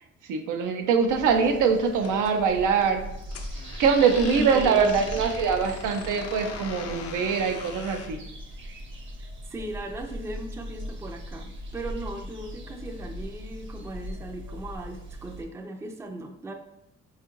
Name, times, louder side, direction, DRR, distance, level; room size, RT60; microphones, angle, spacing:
voice 1, 0.3-3.0 3.8-8.2, right 6 dB, 85° right, 5 dB, 0.5 m, -23 dB
sound 1, 1.1-15.4, equal, 40° right, 0.7 m, -39 dB
sound 2, 2.0-8.2, left 6 dB, 55° left, 0.4 m, -41 dB
voice 2, 4.2-5.1 9.2-16.5, right 1 dB, 10° right, 4 dB, 0.4 m, -37 dB
4.4 x 2.4 x 2.9 m, 0.81 s
cardioid pair, 90°, 30 cm